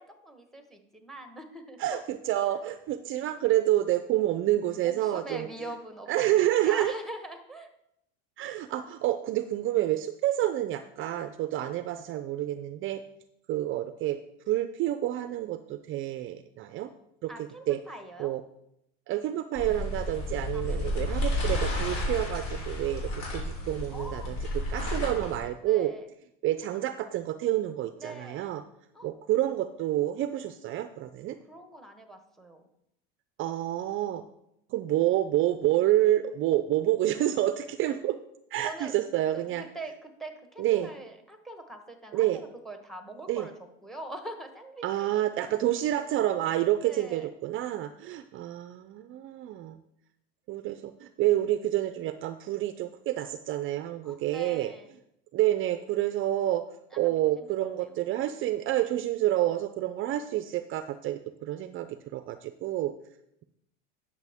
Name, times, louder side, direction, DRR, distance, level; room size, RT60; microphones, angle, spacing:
voice 1, 0.0-2.0 4.5-7.7 17.3-18.3 20.5-21.0 23.9-24.3 25.6-26.1 28.0-28.5 28.9-29.1 31.5-32.6 38.6-38.9 39.3-43.5 43.8-45.5 46.8-47.3 54.0-54.9 56.9-58.0, right 1 dB, ahead, 6 dB, 1.2 m, -43 dB
voice 2, 1.8-5.5 6.1-6.9 8.4-13.0 13.5-14.2 14.5-16.9 17.2-17.3 17.7-17.8 18.2-18.4 19.1-24.3 24.7-25.9 26.4-28.6 29.0-31.4 33.4-34.2 34.7-38.1 38.5-39.6 40.6-40.9 42.1-42.4 43.3-43.5 44.8-49.8 50.5-54.7 55.3-56.6 57.0-62.9, right 13 dB, 40° right, 11 dB, 0.5 m, -28 dB
sound 1, 19.5-25.4, left 1 dB, 60° left, 3.7 m, -31 dB
10.5 x 6.6 x 3.5 m, 0.79 s
supercardioid pair, 115°, 31 cm